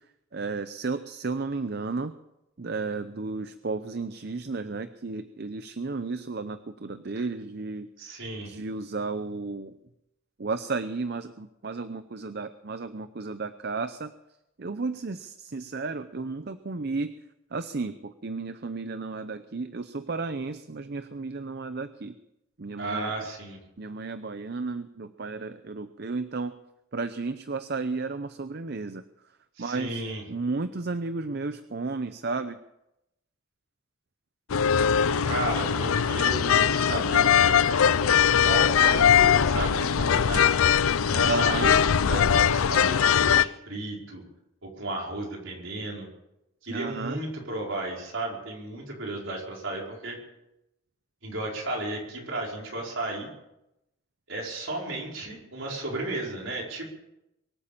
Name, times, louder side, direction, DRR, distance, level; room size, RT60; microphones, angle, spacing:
voice 1, 0.3-2.1 2.6-7.9 8.4-9.8 10.4-14.1 14.6-17.1 17.5-22.2 22.6-23.1 23.8-26.6 26.9-29.0 29.6-32.6 41.2-41.7 46.7-47.2, right 3 dB, 50° right, 11 dB, 0.6 m, -33 dB
voice 2, 8.0-8.5 22.8-23.6 29.6-30.2 35.3-38.0 38.4-40.5 41.0-44.2 44.6-46.1 46.6-50.2 51.2-53.3 54.3-56.9, right 2 dB, 65° right, -2 dB, 5.0 m, -34 dB
sound 1, 34.5-43.4, left 8 dB, 85° left, 0.5 m, -21 dB
23.5 x 8.7 x 7.1 m, 0.88 s
head